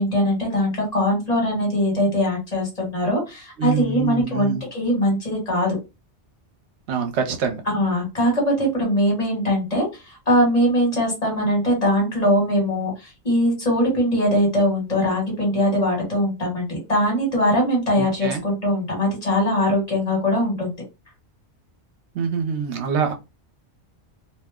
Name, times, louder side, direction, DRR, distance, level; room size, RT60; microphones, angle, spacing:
voice 1, 0.0-5.8 7.7-20.7, equal, 35° left, -1 dB, 1.5 m, -21 dB
voice 2, 3.6-4.6 6.9-7.6 18.0-18.4 22.1-23.1, right 5 dB, 75° right, 5 dB, 1.0 m, -25 dB
2.6 x 2.1 x 3.5 m, 0.26 s
omnidirectional pair, 1.2 m